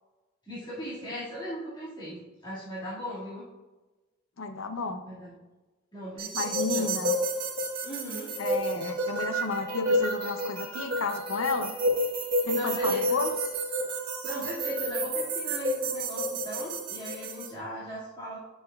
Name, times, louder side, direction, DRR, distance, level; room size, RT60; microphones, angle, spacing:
voice 1, 0.5-3.4 5.1-5.3 5.9-6.9 7.8-8.3 12.5-13.4 14.2-18.4, equal, 20° left, -11 dB, 2.1 m, -38 dB
voice 2, 4.4-5.0 6.3-7.1 8.4-11.7 12.4-13.3, left 3 dB, 65° left, 7 dB, 0.6 m, -32 dB
sound 1, 6.2-17.5, equal, 45° right, 1.7 m, -30 dB
9.6 x 6.5 x 2.4 m, 1.2 s
head